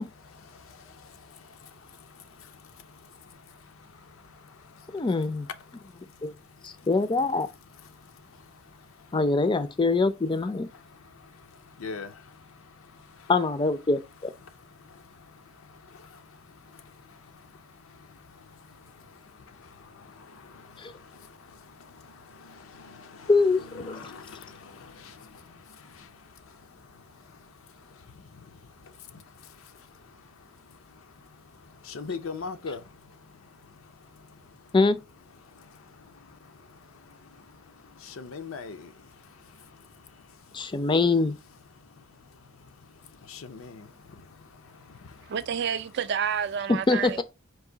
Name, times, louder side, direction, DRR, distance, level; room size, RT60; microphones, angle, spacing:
voice 1, 0.0-13.3 14.4-34.8 35.3-40.9 41.5-45.4, left 5 dB, 80° left, 0.6 m, -47 dB
voice 2, 4.9-5.5 6.2-6.3 6.6-7.5 9.1-10.7 13.3-14.3 20.8-20.9 23.3-24.0 34.7-35.0 40.5-41.4 46.7-47.2, left 3 dB, 25° left, 0.4 m, -24 dB
voice 3, 45.3-47.2, right 7 dB, 55° right, 0.4 m, -29 dB
4.7 x 2.6 x 3.8 m
head